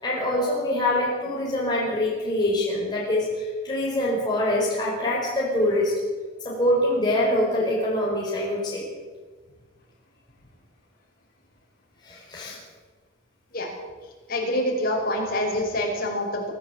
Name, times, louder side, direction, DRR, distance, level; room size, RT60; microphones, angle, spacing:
voice 1, 0.0-5.9 6.4-8.9 12.0-12.6, left 1 dB, 20° left, -5 dB, 5.3 m, -24 dB
voice 2, 14.3-16.5, left 1 dB, 45° left, 0 dB, 5.8 m, -26 dB
24.0 x 13.0 x 8.3 m, 1.4 s
head